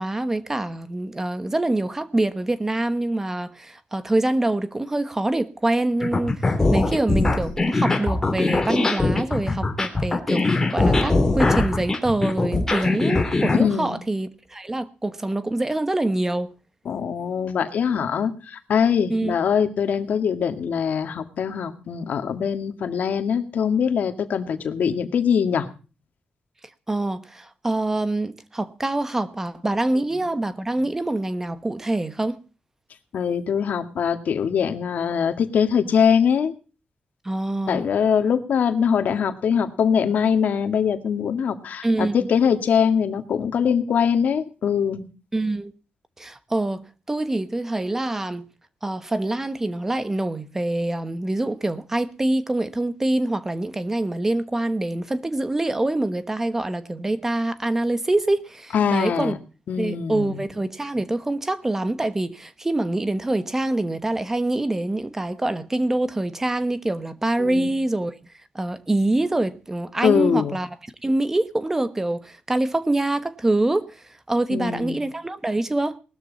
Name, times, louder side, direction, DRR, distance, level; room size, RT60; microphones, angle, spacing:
voice 1, 0.0-16.5 19.1-19.3 26.9-32.4 37.2-37.8 41.8-42.3 45.3-45.7 46.2-48.5 48.8-59.3 59.8-68.2 68.5-70.7 71.0-76.0, right 2 dB, 15° right, 1.2 m, -25 dB
sound 1, 6.0-13.6, left 2 dB, 15° left, 3.3 m, -21 dB
voice 2, 13.6-14.0 16.9-25.7 33.1-36.5 37.7-45.0 58.7-59.3 59.7-60.4 67.4-67.7 70.0-70.6 74.5-75.0, left 7 dB, 65° left, 2.1 m, -22 dB
19.5 x 13.0 x 4.1 m
wide cardioid pair, 170°, 3 cm